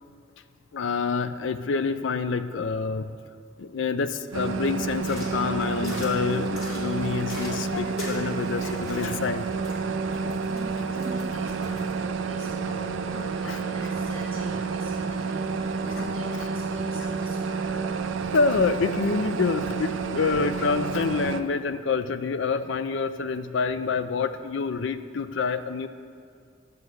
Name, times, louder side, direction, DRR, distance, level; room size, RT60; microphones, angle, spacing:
voice 1, 0.7-3.2 3.6-9.5 10.7-10.8 13.4-13.6 16.0-16.1 16.4-16.5 18.3-25.9, left 4 dB, 65° left, 11 dB, 0.5 m, -27 dB
sound 1, 4.3-21.4, right 4 dB, 70° right, 0.5 m, -30 dB
sound 2, 5.0-11.9, left 1 dB, 90° left, 2.4 m, -42 dB
voice 2, 10.5-17.6, right 1 dB, 25° left, -9 dB, 1.9 m, -42 dB
10.5 x 5.4 x 7.7 m, 2.2 s
head